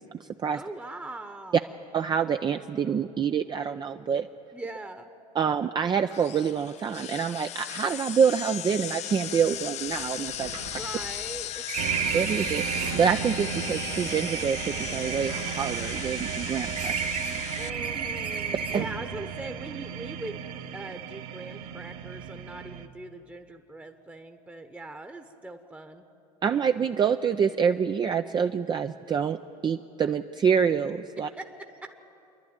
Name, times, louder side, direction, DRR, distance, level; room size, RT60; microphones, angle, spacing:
voice 1, 0.0-0.6 1.9-4.3 5.3-10.5 12.1-17.1 18.7-18.8 26.4-29.4 29.6-31.3, right 7 dB, 20° right, 7 dB, 0.5 m, -26 dB
voice 2, 0.5-1.7 4.5-5.1 10.6-11.6 17.6-20.5 20.7-26.0 31.4-31.9, right 2 dB, 5° right, 6 dB, 1.1 m, -41 dB
sound 1, 6.1-17.7, left 12 dB, 35° left, 0.4 m, -37 dB
sound 2, 9.0-9.1 9.4-9.5 9.9-13.2 14.0-16.4 16.7-19.1, right 6 dB, 85° right, 1.5 m, -34 dB
sound 3, 11.8-22.9, right 8 dB, 50° right, 1.4 m, -35 dB
27.5 x 11.5 x 9.0 m, 2.8 s
hypercardioid pair, 75°, 20 cm